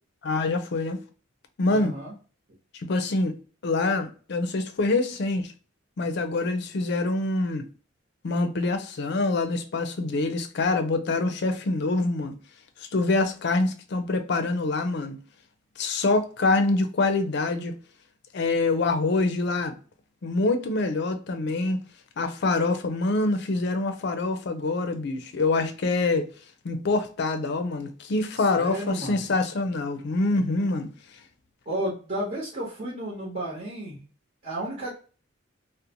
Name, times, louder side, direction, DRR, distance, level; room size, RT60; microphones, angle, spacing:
voice 1, 0.2-1.0 1.6-1.9 2.9-3.4 3.6-5.5 6.0-7.6 8.2-12.4 12.9-15.2 15.8-17.7 18.3-19.7 20.2-21.8 22.2-26.2 26.6-30.9, left 3 dB, 55° left, 0.4 m, -25 dB
voice 2, 1.7-2.1 28.4-29.2 31.6-34.0 34.4-34.9, right 1 dB, 40° right, 0.9 m, -32 dB
2.6 x 2.0 x 2.8 m
head